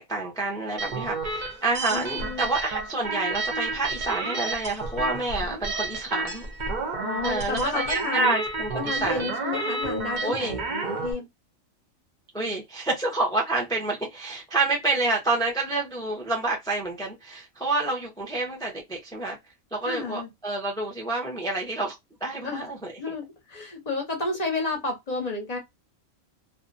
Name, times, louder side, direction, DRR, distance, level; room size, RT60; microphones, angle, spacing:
voice 1, 0.0-6.5 7.2-9.3 10.2-10.6 12.3-19.4 19.7-22.0 22.2-22.9, right 2 dB, 5° left, 0.3 m, -28 dB
sound 1, 0.8-11.1, right 3 dB, 50° right, 0.6 m, -31 dB
voice 2, 1.9-2.5 7.0-8.4 8.7-11.3 19.9-20.3 22.4-22.7 23.0-25.6, left 3 dB, 40° left, 0.7 m, -31 dB
2.5 x 2.1 x 2.5 m
omnidirectional pair, 1.4 m